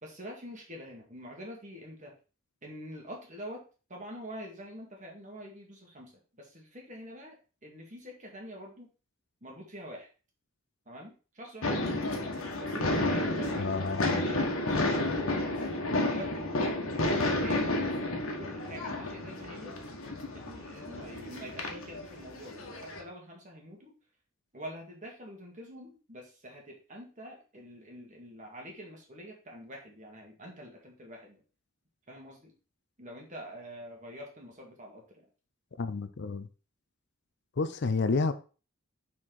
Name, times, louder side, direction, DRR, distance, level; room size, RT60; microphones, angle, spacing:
voice 1, 0.0-2.1 2.6-3.6 3.9-7.4 7.6-8.9 9.4-10.1 10.9-12.0 12.6-13.7 14.1-16.8 17.3-19.7 20.3-23.9 24.5-31.4 32.1-32.5 33.0-35.3, equal, 35° right, 2.0 m, -46 dB
sound 1, 11.6-23.0, left 2 dB, 70° left, 1.5 m, -31 dB
voice 2, 13.5-14.3 35.8-36.5 37.6-38.3, left 4 dB, 50° left, 0.5 m, -30 dB
6.1 x 4.4 x 4.5 m
head